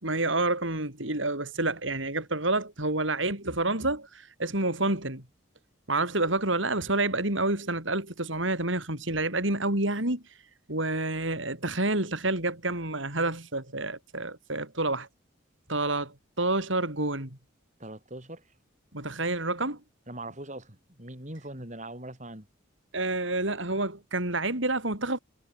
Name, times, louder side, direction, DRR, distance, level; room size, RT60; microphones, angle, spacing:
voice 1, 0.0-5.2 5.9-10.2 10.7-15.1 15.7-17.4 18.9-19.8 22.9-25.2, right 2 dB, 70° right, 6.7 m, -28 dB
voice 2, 17.8-18.5 20.1-22.5, right 1 dB, 35° right, 5.2 m, -41 dB
head